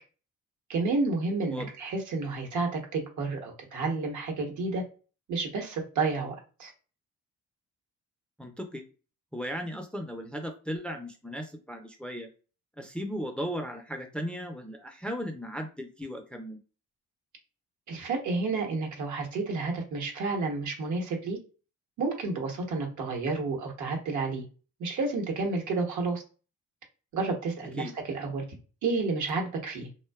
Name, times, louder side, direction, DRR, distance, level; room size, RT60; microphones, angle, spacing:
voice 1, 0.7-4.8 5.3-6.7 17.9-21.4 22.0-24.4 24.8-26.2 27.1-28.4 28.8-29.9, right 3 dB, 75° right, 2 dB, 0.9 m, -30 dB
voice 2, 8.4-8.8 9.3-12.3 12.8-16.6 27.8-27.9, equal, 5° left, 4 dB, 0.4 m, -36 dB
2.6 x 2.1 x 2.3 m, 0.36 s
cardioid pair, 90°, 30 cm